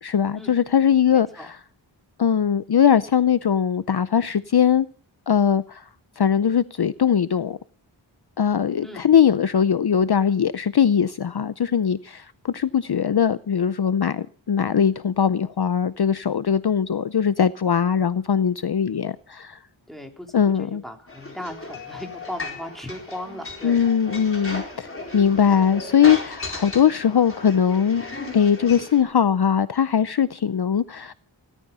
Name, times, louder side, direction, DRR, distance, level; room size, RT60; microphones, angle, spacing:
voice 1, 0.0-1.6 2.2-4.9 5.3-5.9 6.2-7.6 8.4-19.6 20.3-20.8 23.6-28.0 28.3-31.1, left 8 dB, 55° left, 0.6 m, -20 dB
voice 2, 1.1-1.5 8.8-9.0 19.9-23.8, left 1 dB, ahead, 3.6 m, -37 dB
sound 1, 21.1-29.0, left 2 dB, 25° left, 4.4 m, -36 dB
17.0 x 13.5 x 5.5 m
wide cardioid pair, 55°, 47 cm